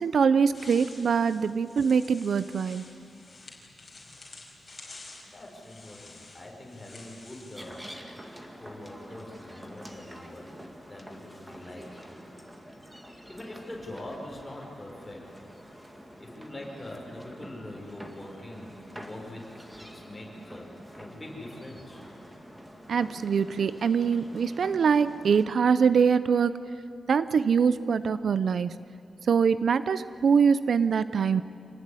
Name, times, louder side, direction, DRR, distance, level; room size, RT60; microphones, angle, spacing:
voice 1, 0.0-2.8 22.9-26.6 27.1-28.8 29.2-31.4, right 6 dB, 60° right, 14 dB, 0.5 m, -23 dB
sound 1, 0.5-7.9, left 3 dB, 30° left, 4.9 m, -49 dB
voice 2, 5.3-7.9 8.6-10.6 10.9-12.0 13.0-15.3 16.2-20.7 21.0-22.0, left 1 dB, 15° left, -2 dB, 5.0 m, -43 dB
sound 2, 7.6-25.5, equal, 5° right, 2.0 m, -47 dB
26.5 x 18.5 x 9.8 m, 2.5 s
wide cardioid pair, 160°, 0 cm